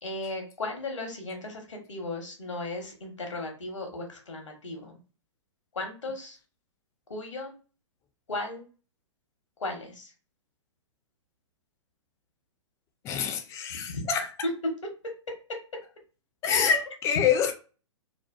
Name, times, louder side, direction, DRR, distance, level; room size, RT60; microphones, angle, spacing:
voice 1, 0.0-5.0 5.7-6.4 7.1-7.5 8.3-8.6 9.6-10.1 13.9-14.0, left 2 dB, 75° left, 0.9 m, -36 dB
voice 2, 13.0-14.3 16.4-17.5, left 7 dB, 20° left, 0.4 m, -26 dB
2.6 x 2.2 x 2.2 m
figure-of-eight pair, 110°, 16 cm